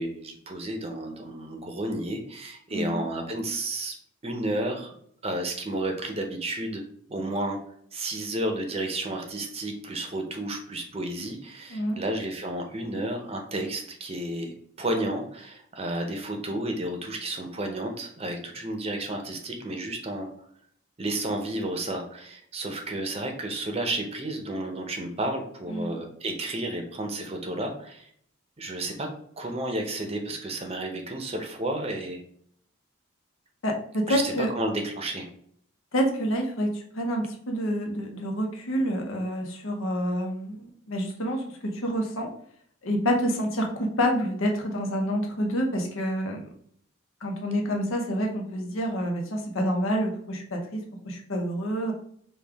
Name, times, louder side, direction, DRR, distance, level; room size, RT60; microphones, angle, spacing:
voice 1, 0.0-4.0 4.2-5.0 5.2-6.8 7.1-7.6 7.9-20.3 21.0-28.1 28.6-29.1 29.4-32.2 34.1-35.3, right 1 dB, 30° right, 4 dB, 0.6 m, -32 dB
voice 2, 2.7-3.0 11.7-12.0 25.7-25.9 33.6-34.5 35.9-42.3 42.8-46.5 47.2-51.9, equal, 85° left, 2 dB, 0.9 m, -28 dB
5.2 x 2.3 x 3.4 m, 0.65 s
head